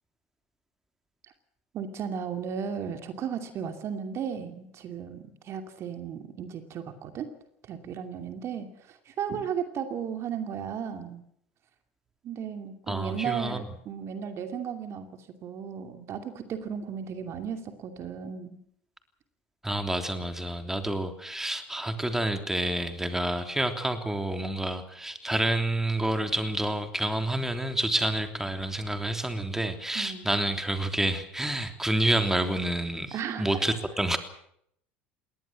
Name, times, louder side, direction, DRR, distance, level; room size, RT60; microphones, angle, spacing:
voice 1, 1.7-7.3 7.6-11.2 12.2-15.1 15.4-18.6 29.9-30.3 33.1-33.8, right 7 dB, 50° right, 7 dB, 2.6 m, -35 dB
voice 2, 12.9-13.6 19.6-34.2, right 1 dB, 5° right, 7 dB, 3.1 m, -28 dB
21.5 x 18.5 x 7.5 m, 0.70 s
hypercardioid pair, 75°, 6 cm